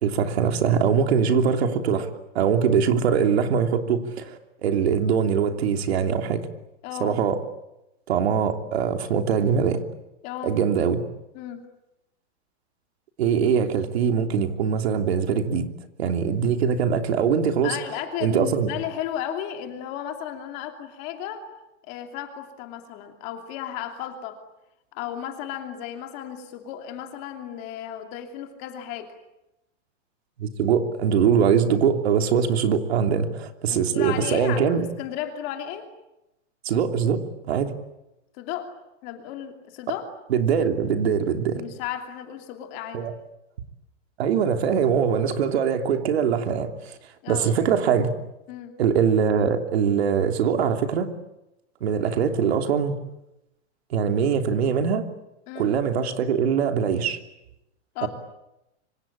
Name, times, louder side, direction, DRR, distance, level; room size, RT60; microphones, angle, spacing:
voice 1, 0.0-2.1 2.3-6.4 7.0-7.4 8.1-9.8 10.4-11.0 13.2-15.7 16.0-17.8 18.2-18.7 30.4-34.8 36.6-37.7 40.3-41.6 42.9-43.1 44.2-47.0 47.3-48.1 48.8-51.1 51.8-53.0 53.9-55.0 55.5-57.2 58.0-58.1, right 7 dB, 60° right, 6 dB, 3.1 m, -22 dB
voice 2, 6.8-7.2 10.2-10.6 11.3-11.6 17.6-21.5 21.9-24.4 24.9-29.1 33.7-35.9 38.4-38.8 39.0-40.1 41.6-43.0 47.2-47.5 48.5-48.8 55.5-55.7 57.9-58.1, left 10 dB, 25° left, 5 dB, 2.8 m, -34 dB
26.0 x 25.5 x 8.7 m, 0.89 s
supercardioid pair, 180°, 35 cm